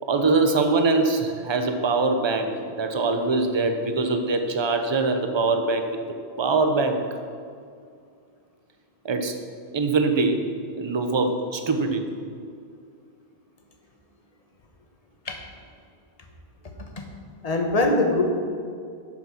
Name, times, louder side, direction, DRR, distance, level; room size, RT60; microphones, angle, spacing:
voice 1, 0.0-6.0 6.4-7.0 9.0-9.4 9.7-10.4 10.7-12.1, right 3 dB, 30° right, 6 dB, 0.7 m, -23 dB
voice 2, 17.4-18.2, left 2 dB, 40° left, 3 dB, 1.1 m, -23 dB
8.4 x 6.7 x 5.9 m, 2.3 s
omnidirectional pair, 1.1 m